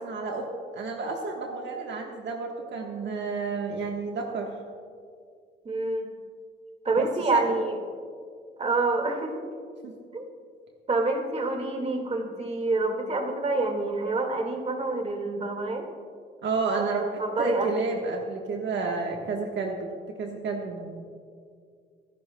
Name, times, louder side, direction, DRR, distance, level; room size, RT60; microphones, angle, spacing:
voice 1, 0.0-4.5 7.0-7.1 7.3-7.5 9.8-10.0 16.4-21.0, right 4 dB, 65° right, 1 dB, 1.3 m, -31 dB
voice 2, 5.6-6.1 6.8-7.8 8.6-9.4 10.1-10.2 10.9-15.9 16.8-17.9, right 2 dB, 30° right, 3 dB, 1.9 m, -27 dB
25.0 x 11.0 x 2.2 m, 2.2 s
cardioid pair, 90°, 20 cm